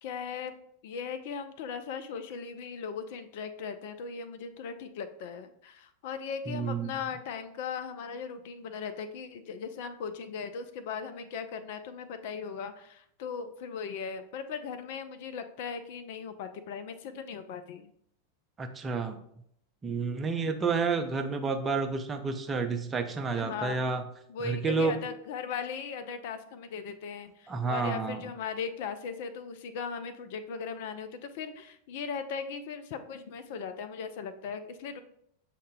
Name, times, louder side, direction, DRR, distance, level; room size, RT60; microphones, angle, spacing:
voice 1, 0.0-0.5 0.8-17.9 23.3-23.9 24.3-35.0, left 6 dB, 50° left, 9 dB, 0.3 m, -38 dB
voice 2, 6.5-6.9 18.6-19.2 19.8-24.0 24.4-24.9 27.5-28.2, right 4 dB, 20° right, 5 dB, 0.5 m, -30 dB
6.4 x 2.1 x 3.5 m, 0.69 s
figure-of-eight pair, 90°, 0 cm